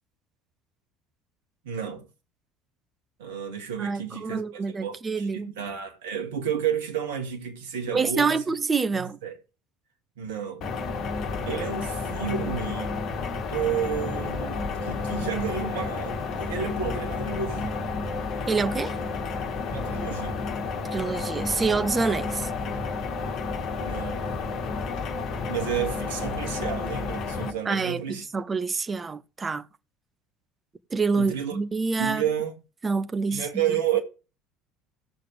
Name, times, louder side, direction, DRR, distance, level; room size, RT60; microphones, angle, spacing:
voice 1, 1.6-2.1 3.2-8.4 8.9-9.4 10.2-10.7 11.5-12.9 13.5-17.8 19.7-20.5 23.8-24.3 25.5-28.2 31.2-31.6 32.0-32.5 33.3-34.0, right 8 dB, 65° right, 2.3 m, -31 dB
voice 2, 3.8-5.5 7.9-9.2 18.5-19.0 20.9-22.5 27.6-29.7 30.9-32.2 32.8-33.5, right 4 dB, 25° right, 0.8 m, -27 dB
sound 1, 10.6-27.5, left 4 dB, 45° left, 1.7 m, -31 dB
17.0 x 6.7 x 3.4 m
figure-of-eight pair, 60°, 0 cm